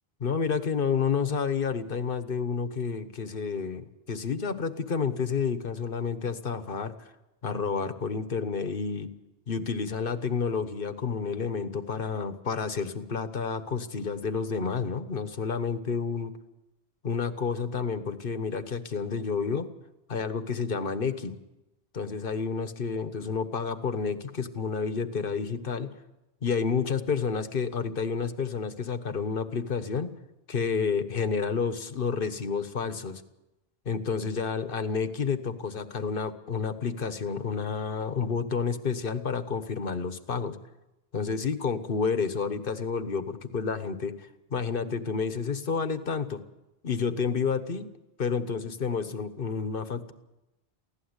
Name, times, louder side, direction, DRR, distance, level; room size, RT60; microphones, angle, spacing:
voice 1, 0.2-7.1 7.4-9.1 9.5-16.3 17.0-19.7 20.1-21.4 21.9-25.9 26.4-30.1 30.5-33.2 33.8-40.6 41.1-46.4 46.8-47.9 48.2-50.1, left 5 dB, 60° left, 11 dB, 1.4 m, -30 dB
23.5 x 16.0 x 8.1 m, 0.99 s
omnidirectional pair, 1.0 m